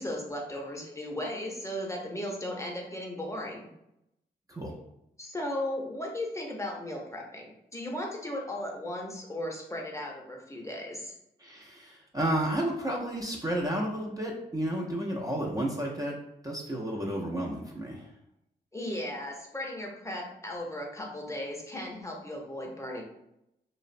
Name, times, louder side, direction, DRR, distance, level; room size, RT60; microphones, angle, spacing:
voice 1, 0.0-3.7 5.2-7.5 7.7-11.1 18.7-23.0, left 1 dB, 15° left, -1 dB, 0.7 m, -36 dB
voice 2, 11.4-16.2 16.4-18.1, right 1 dB, 20° right, -2 dB, 0.5 m, -32 dB
2.4 x 2.0 x 2.5 m, 0.82 s
supercardioid pair, 45°, 20 cm